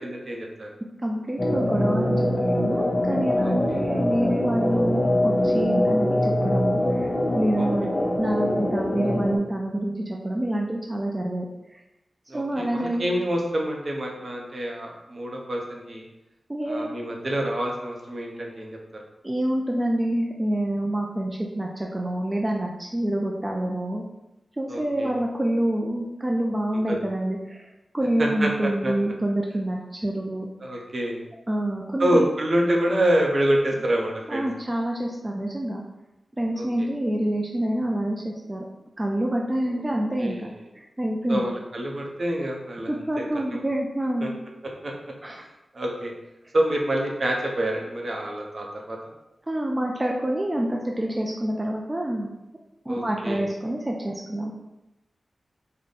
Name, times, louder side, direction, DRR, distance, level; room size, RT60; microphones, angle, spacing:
voice 1, 0.0-0.7 3.4-3.8 12.3-16.0 16.7-18.8 24.7-25.1 26.9-27.0 28.2-28.9 30.6-31.2 32.0-34.4 36.6-36.9 40.2-40.5 41.3-43.0 43.5-43.6 44.2-44.3 44.8-44.9 45.7-46.1 46.5-49.0 52.9-53.4, right 1 dB, 55° right, 0 dB, 0.7 m, -27 dB
voice 2, 1.0-7.1 7.3-7.9 8.2-11.5 12.3-13.1 16.5-17.0 19.2-24.0 24.6-27.7 27.9-30.5 30.7-30.8 31.5-32.1 34.3-35.8 36.4-38.7 39.0-40.5 40.8-41.4 42.9-44.3 45.2-45.4 49.5-52.3 52.9-54.5, right 1 dB, 25° right, 0 dB, 0.4 m, -27 dB
sound 1, 1.4-9.4, left 1 dB, 20° left, 0.6 m, -23 dB
3.5 x 2.2 x 3.9 m, 0.95 s
cardioid pair, 55°, 0 cm